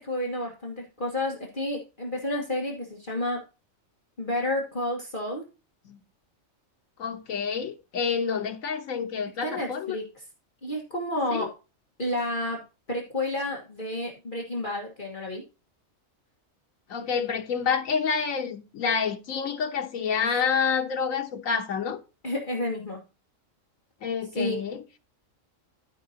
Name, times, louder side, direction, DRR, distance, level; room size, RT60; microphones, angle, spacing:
voice 1, 0.0-3.4 4.2-5.4 9.4-10.2 10.6-11.5 12.0-12.6 12.9-15.4 22.2-23.0 24.3-24.6, left 1 dB, 40° left, 1.7 m, -30 dB
voice 2, 7.0-10.0 11.3-11.5 16.9-22.0 24.0-24.8, left 6 dB, 85° left, 1.4 m, -28 dB
13.0 x 5.6 x 2.9 m
omnidirectional pair, 1.4 m